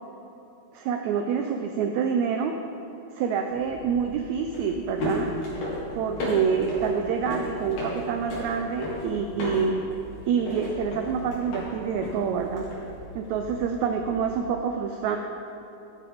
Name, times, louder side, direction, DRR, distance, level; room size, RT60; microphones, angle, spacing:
voice 1, 0.7-2.5 3.1-5.3 6.0-9.8 10.3-12.7 13.2-15.2, right 6 dB, 85° right, 5 dB, 1.6 m, -27 dB
sound 1, 3.5-14.4, left 1 dB, 70° left, 3.6 m, -35 dB
11.5 x 9.9 x 3.5 m, 3.0 s
omnidirectional pair, 3.8 m